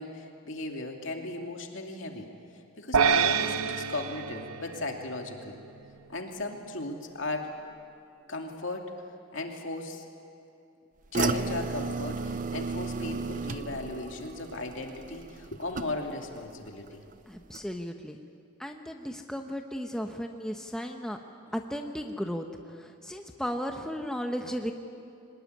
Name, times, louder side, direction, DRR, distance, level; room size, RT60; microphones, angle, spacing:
voice 1, 0.0-2.3 2.8-5.6 6.1-7.5 8.3-8.9 9.3-10.0 11.1-17.0, left 2 dB, 60° left, 2 dB, 2.7 m, -36 dB
sound 1, 2.9-5.4, right 6 dB, 80° right, 0.7 m, -27 dB
sound 2, 11.1-16.4 16.7-17.1 17.5-17.6, right 4 dB, 35° right, 0.6 m, -34 dB
voice 2, 17.3-18.2 18.6-21.2 21.5-22.5 22.7-24.7, equal, 5° left, 3 dB, 0.9 m, -35 dB
24.0 x 19.5 x 9.6 m, 2.6 s
head